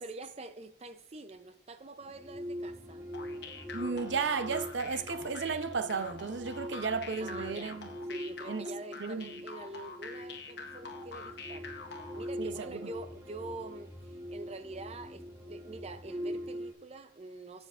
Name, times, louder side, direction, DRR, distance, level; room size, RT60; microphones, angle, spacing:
voice 1, 0.0-3.0 7.2-7.8 8.1-11.7 12.1-17.7, right 2 dB, 35° right, 0.5 m, -46 dB
sound 1, 2.0-16.7, equal, 15° right, 1.1 m, -43 dB
sound 2, 3.1-12.3, left 4 dB, 60° left, 0.9 m, -46 dB
voice 2, 3.7-7.9 8.5-8.7 9.0-9.4 12.4-12.8, right 5 dB, 70° right, 0.7 m, -34 dB
11.0 x 7.9 x 2.5 m
head